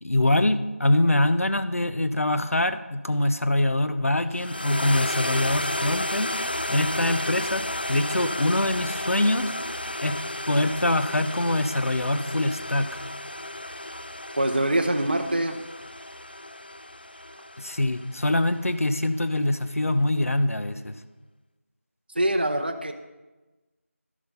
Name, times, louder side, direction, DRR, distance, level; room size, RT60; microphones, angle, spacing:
voice 1, 0.0-6.3 6.7-7.6 7.9-9.5 10.0-10.2 10.5-12.9 17.6-20.9, left 1 dB, 70° left, 12 dB, 0.8 m, -24 dB
sound 1, 4.3-18.8, left 1 dB, 40° left, 0.4 m, -33 dB
voice 2, 14.4-15.6 22.2-22.9, right 1 dB, 40° right, 5 dB, 0.6 m, -24 dB
12.0 x 6.2 x 5.5 m, 1.2 s
figure-of-eight pair, 175°, 8 cm